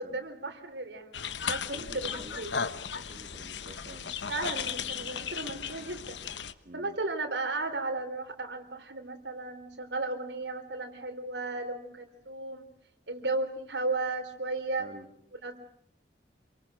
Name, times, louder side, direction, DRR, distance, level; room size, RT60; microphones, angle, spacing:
voice 1, 0.0-2.5 4.3-6.2 6.7-12.6 13.1-14.9 15.4-15.6, right 3 dB, 90° right, 4 dB, 3.8 m, -35 dB
sound 1, 1.1-6.5, left 7 dB, 85° left, 1.1 m, -36 dB
voice 2, 1.6-4.1 6.6-7.0 14.8-15.1, right 1 dB, 45° right, 2 dB, 2.4 m, -50 dB
28.0 x 23.5 x 6.3 m, 0.67 s
head